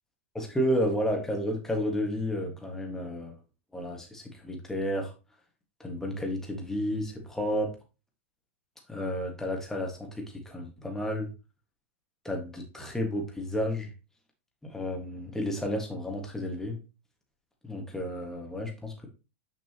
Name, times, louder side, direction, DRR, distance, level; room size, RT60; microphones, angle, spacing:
voice 1, 0.3-3.4 3.7-5.1 5.8-7.7 8.9-11.3 12.2-13.9 14.6-16.8 17.6-19.1, equal, 5° left, 1 dB, 1.8 m, -31 dB
6.3 x 5.3 x 3.0 m, 0.30 s
hypercardioid pair, 115°, 7 cm